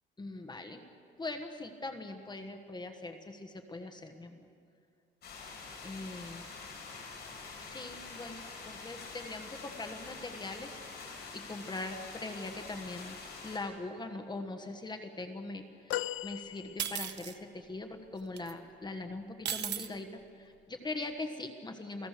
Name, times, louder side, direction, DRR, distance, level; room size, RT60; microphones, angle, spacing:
voice 1, 0.2-0.8 1.2-4.4 5.8-6.4 7.6-10.8 11.3-13.2 13.4-22.1, left 2 dB, 20° left, 6 dB, 1.4 m, -41 dB
sound 1, 5.2-13.6, left 4 dB, 55° left, 5.6 m, -46 dB
sound 2, 15.9-17.3 18.0-18.1, left 15 dB, 85° left, 0.6 m, -38 dB
sound 3, 16.8-17.3 18.4-18.5 19.5-19.9, right 10 dB, 60° right, 1.1 m, -35 dB
29.0 x 17.5 x 6.7 m, 2.4 s
cardioid pair, 135°, 20 cm